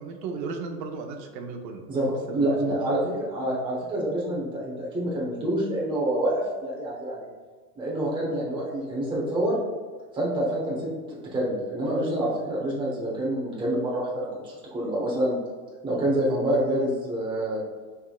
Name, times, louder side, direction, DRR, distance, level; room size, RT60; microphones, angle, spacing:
voice 1, 0.0-1.8 2.4-2.8, right 4 dB, 85° right, 4 dB, 0.9 m, -35 dB
voice 2, 1.9-7.3 7.8-9.6 10.1-15.3 15.8-17.6, right 1 dB, 10° right, -5 dB, 1.0 m, -27 dB
5.8 x 3.6 x 2.3 m, 1.4 s
supercardioid pair, 155°, 49 cm